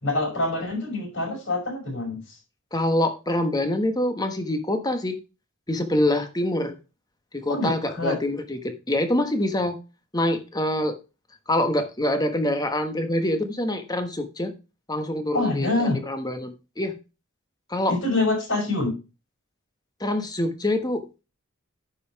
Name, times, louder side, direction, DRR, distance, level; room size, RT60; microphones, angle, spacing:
voice 1, 0.0-2.4 7.5-8.2 15.3-16.0 17.9-19.0, left 2 dB, 60° left, 0 dB, 5.9 m, -26 dB
voice 2, 2.7-5.2 5.7-6.7 7.3-9.8 10.1-11.0 11.5-14.5 14.9-16.9 17.7-17.9 20.0-21.0, left 1 dB, 20° left, 7 dB, 1.3 m, -25 dB
9.8 x 5.6 x 4.7 m, 0.30 s
head